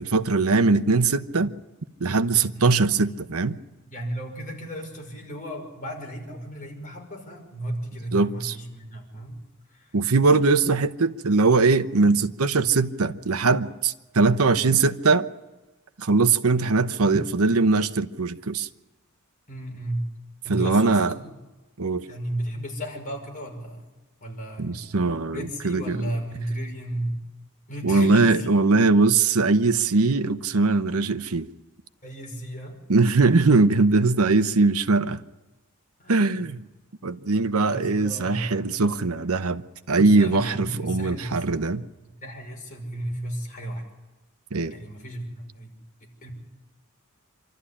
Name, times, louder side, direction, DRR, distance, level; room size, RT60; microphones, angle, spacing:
voice 1, 0.0-1.5 2.0-3.6 8.1-8.5 9.9-15.3 16.0-18.7 20.5-21.1 21.8-22.1 24.6-26.1 27.8-31.5 32.9-35.2 36.1-36.6 37.0-41.8 44.5-44.7, right 3 dB, 80° right, 0.9 m, -21 dB
voice 2, 3.9-9.4 9.7-9.9 19.5-20.1 20.4-21.4 22.1-23.9 24.2-25.0 25.3-27.2 27.7-28.5 32.0-32.8 36.0-36.5 37.7-38.6 40.0-41.4 42.2-43.8 44.7-45.8 46.0-46.3, right 1 dB, 40° left, 5.6 m, -34 dB
27.0 x 13.0 x 10.0 m
head